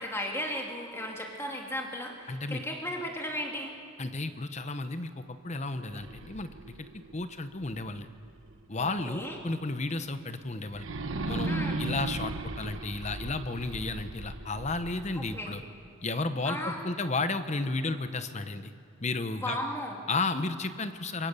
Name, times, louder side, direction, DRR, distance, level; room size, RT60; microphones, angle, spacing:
voice 1, 0.0-3.7 8.8-9.4 11.5-11.8 15.2-15.6 16.4-16.8 19.4-20.0, left 1 dB, 10° left, 0 dB, 2.3 m, -35 dB
voice 2, 2.3-2.6 4.0-6.9 7.1-8.1 8.7-10.9 11.3-15.6 16.0-18.7 19.0-19.6 20.1-21.3, left 3 dB, 30° left, 10 dB, 0.9 m, -33 dB
sound 1, 5.8-8.8 9.2-9.3 10.7-15.8, right 2 dB, 65° right, 1.1 m, -37 dB
26.0 x 23.0 x 6.9 m, 2.5 s
head